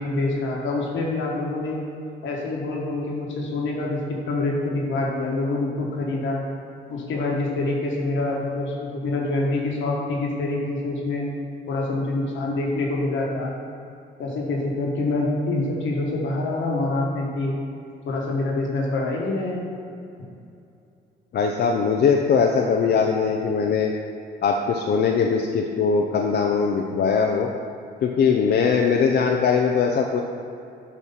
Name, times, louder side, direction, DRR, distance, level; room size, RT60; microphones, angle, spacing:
voice 1, 0.0-1.8 2.2-6.4 6.9-11.3 11.7-13.6 14.2-17.5 18.0-19.7, left 2 dB, 75° left, -2 dB, 1.4 m, -26 dB
voice 2, 21.3-23.9 24.4-27.5 28.0-30.2, left 5 dB, 55° left, 2 dB, 0.5 m, -21 dB
7.9 x 3.1 x 5.6 m, 2.6 s
cardioid pair, 90°, 20 cm